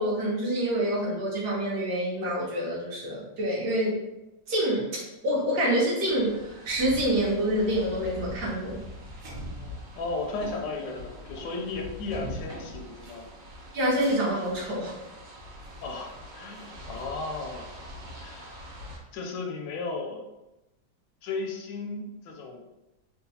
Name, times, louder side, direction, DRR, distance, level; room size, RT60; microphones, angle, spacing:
voice 1, 0.0-4.0 4.5-8.8 13.7-15.0, equal, 65° right, -5 dB, 1.5 m, -27 dB
sound 1, 6.0-19.0, equal, 90° right, 1.4 m, -42 dB
voice 2, 9.6-13.3 15.8-17.8 18.2-18.5 19.1-20.3 21.2-22.6, left 3 dB, 80° left, 2 dB, 1.2 m, -35 dB
3.8 x 2.2 x 2.7 m, 0.97 s
omnidirectional pair, 1.9 m